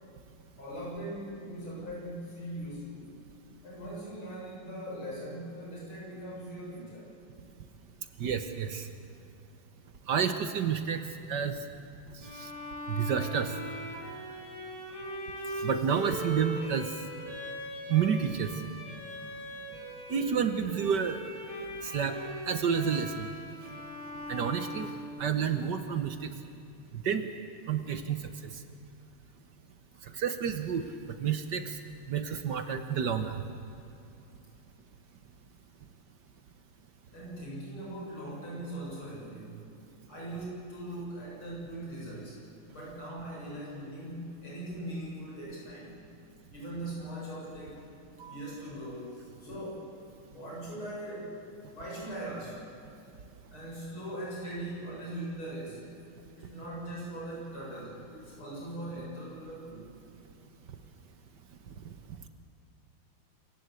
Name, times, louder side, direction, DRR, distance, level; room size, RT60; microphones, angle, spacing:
voice 1, 0.6-3.1 3.6-7.1 37.1-39.8 40.1-46.0 46.5-47.9 48.3-49.8 50.2-51.4 51.7-52.6 53.5-55.9 56.3-59.9, right 1 dB, 75° left, -5 dB, 8.4 m, -40 dB
voice 2, 8.2-8.9 10.1-11.0 11.3-11.6 12.4-12.5 12.9-13.5 13.9-14.3 15.6-16.9 17.9-18.5 20.1-21.2 21.8-22.1 22.5-23.3 24.3-24.9 25.2-26.3 26.9-27.3 27.7-28.2 30.2-30.9 31.2-31.7 32.1-33.4 48.2-48.5, right 7 dB, 60° right, 9 dB, 1.5 m, -29 dB
Bowed string instrument, 12.2-25.7, equal, 15° right, 3.8 m, -40 dB
26.5 x 16.0 x 8.3 m, 2.7 s
omnidirectional pair, 2.3 m